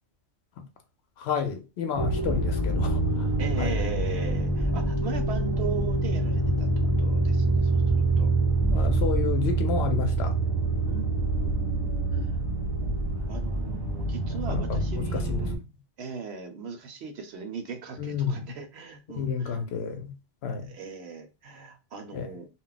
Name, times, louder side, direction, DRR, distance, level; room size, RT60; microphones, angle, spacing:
voice 1, 1.2-3.3 3.6-3.7 8.7-10.4 14.3-14.8 15.1-15.4 18.0-18.5 19.2-20.1 20.4-20.7 22.1-22.3, left 6 dB, 70° left, 0.8 m, -30 dB
sound 1, 1.9-15.6, right 2 dB, 35° right, 0.4 m, -26 dB
voice 2, 3.4-6.7 7.0-8.3 10.9-12.3 13.3-15.6 16.0-19.6 20.7-22.5, right 5 dB, 65° right, 0.8 m, -38 dB
2.3 x 2.1 x 3.7 m
omnidirectional pair, 1.2 m